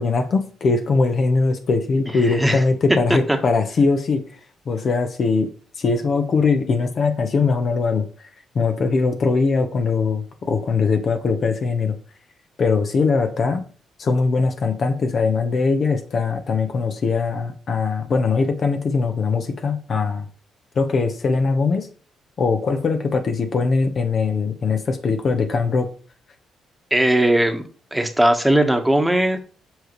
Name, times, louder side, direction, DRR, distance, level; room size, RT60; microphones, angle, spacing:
voice 1, 0.0-4.2 4.7-5.5 5.8-8.1 8.5-11.9 12.6-13.6 14.0-20.3 20.8-21.9 22.4-25.9, left 4 dB, 55° left, 6 dB, 1.0 m, -21 dB
voice 2, 2.3-2.6 3.3-3.4 26.9-27.6 27.9-29.4, right 1 dB, 5° right, 5 dB, 1.2 m, -18 dB
7.6 x 5.1 x 3.1 m, 0.40 s
supercardioid pair, 60°, 0 cm